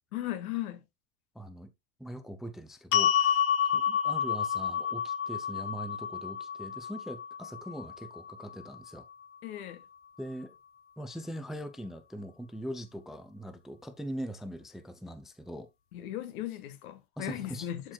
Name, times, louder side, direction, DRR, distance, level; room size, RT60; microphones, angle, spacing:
voice 1, 0.1-0.8 9.4-9.8 15.9-17.9, left 13 dB, 80° left, 1.6 m, -37 dB
voice 2, 1.4-1.7 2.0-9.1 10.2-10.5 11.0-15.7 17.2-17.7, equal, ahead, 0.4 m, -41 dB
sound 1, 2.9-9.1, left 8 dB, 30° left, 0.9 m, -30 dB
12.0 x 4.5 x 2.3 m
supercardioid pair, 135°, 42 cm